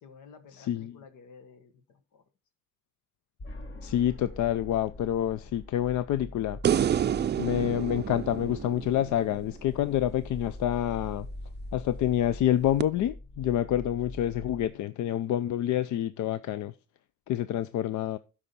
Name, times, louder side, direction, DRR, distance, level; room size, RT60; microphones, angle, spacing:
voice 1, 0.0-2.2, left 5 dB, 90° left, 1.4 m, -52 dB
voice 2, 0.5-1.0 3.8-6.6 7.4-11.3 11.7-16.7 17.3-18.2, left 11 dB, 75° left, 0.5 m, -28 dB
sound 1, 3.4-14.7, left 1 dB, 40° left, 1.4 m, -43 dB
sound 2, 6.6-10.0 12.8-12.9, right 9 dB, 35° right, 0.4 m, -29 dB
12.5 x 4.9 x 4.3 m
cardioid pair, 90°, 30 cm